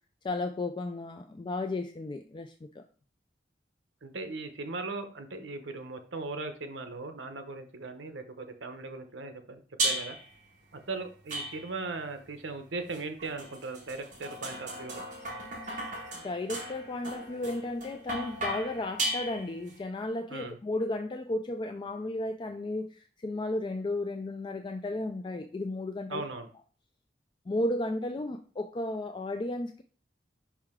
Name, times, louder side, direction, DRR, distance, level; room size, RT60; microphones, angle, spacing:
voice 1, 0.2-2.8 16.1-26.2 27.5-29.8, left 2 dB, 25° left, 6 dB, 0.3 m, -34 dB
voice 2, 4.0-10.1 10.7-15.0 20.3-20.6 26.1-26.5, right 3 dB, 75° right, 7 dB, 0.8 m, -38 dB
sound 1, 9.8-10.3 11.3-12.0 12.9-19.8, right 1 dB, 45° right, 1.7 m, -36 dB
5.6 x 4.8 x 3.6 m, 0.41 s
head